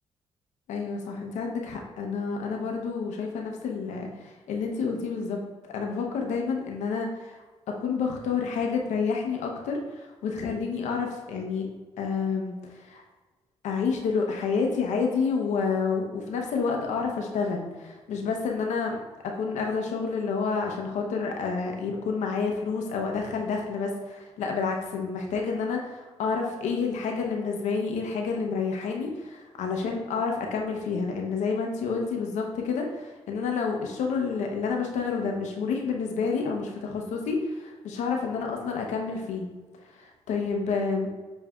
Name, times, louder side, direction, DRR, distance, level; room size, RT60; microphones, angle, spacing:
voice 1, 0.7-7.4 7.7-11.7 12.0-13.0 13.6-19.0 19.2-39.5 39.8-41.1, left 5 dB, 80° left, 1 dB, 0.6 m, -29 dB
7.0 x 2.6 x 2.2 m, 1.3 s
supercardioid pair, 50°, 12 cm